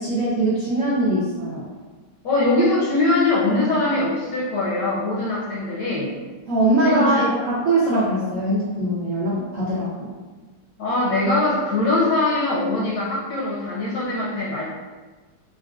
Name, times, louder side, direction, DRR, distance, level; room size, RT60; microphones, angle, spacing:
voice 1, 0.0-1.6 6.5-10.1, right 1 dB, 80° right, -8 dB, 0.7 m, -22 dB
voice 2, 2.2-6.1 6.8-7.3 10.8-14.6, left 2 dB, 70° left, -6 dB, 1.1 m, -22 dB
3.9 x 2.4 x 2.3 m, 1.3 s
omnidirectional pair, 2.3 m